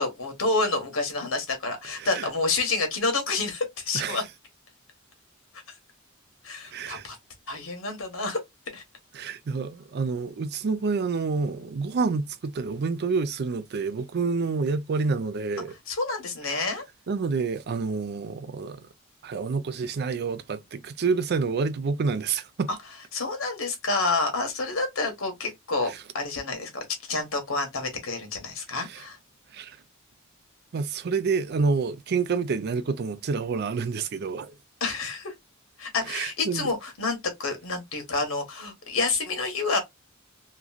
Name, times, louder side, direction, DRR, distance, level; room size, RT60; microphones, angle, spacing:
voice 1, 0.0-4.2 6.4-7.2 7.5-8.4 8.7-8.8 15.9-16.8 23.1-25.9 26.1-29.2 34.8-35.3 35.8-39.8, left 3 dB, 90° left, 1.2 m, -28 dB
voice 2, 6.7-7.1 9.1-15.8 17.1-18.8 19.2-22.7 25.9-26.0 28.8-29.0 29.5-29.8 30.7-34.5 36.0-36.7, right 4 dB, 55° right, 0.4 m, -28 dB
3.0 x 2.5 x 2.3 m
head